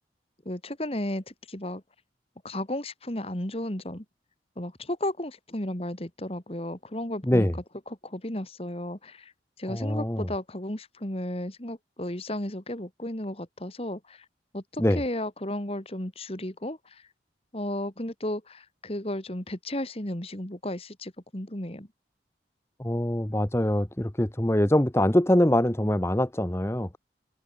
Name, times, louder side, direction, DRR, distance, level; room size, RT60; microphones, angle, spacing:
voice 1, 0.4-1.8 2.4-4.0 4.6-7.5 7.9-9.3 9.6-14.2 14.5-17.0 17.5-21.9, left 1 dB, 35° left, 2.6 m, -34 dB
voice 2, 7.2-7.5 9.7-10.3 14.8-15.0 22.8-27.0, left 1 dB, 15° left, 1.0 m, -24 dB
open air
head